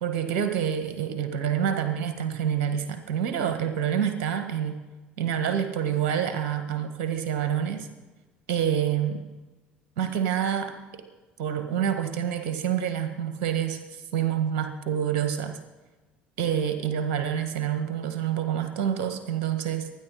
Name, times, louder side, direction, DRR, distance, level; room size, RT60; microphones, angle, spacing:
voice 1, 0.0-4.8 5.2-7.9 8.5-9.2 10.0-11.0 11.4-13.8 14.1-15.6 16.4-19.9, right 9 dB, 65° right, 7 dB, 1.7 m, -27 dB
24.5 x 10.0 x 4.2 m, 1.2 s
figure-of-eight pair, 60°, 5 cm